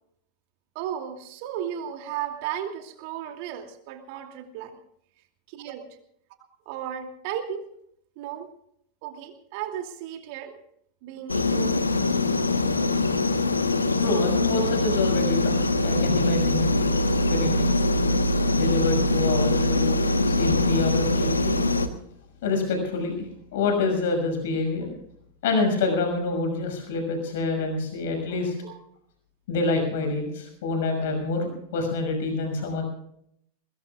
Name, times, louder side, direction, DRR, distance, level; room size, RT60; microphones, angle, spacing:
voice 1, 0.7-4.8 5.5-5.9 6.7-7.6 8.2-8.5 9.0-10.5 11.0-11.8 28.3-28.4 28.7-28.8, right 10 dB, 45° right, 6 dB, 2.6 m, -34 dB
sound 1, 11.3-21.9, left 2 dB, 80° left, 1.2 m, -23 dB
voice 2, 13.9-17.8 18.5-21.6 22.4-23.2 23.5-24.9 25.4-28.5 29.5-32.8, left 3 dB, 55° left, 3 dB, 6.2 m, -27 dB
22.0 x 21.5 x 2.4 m, 0.72 s
figure-of-eight pair, 90°, 0 cm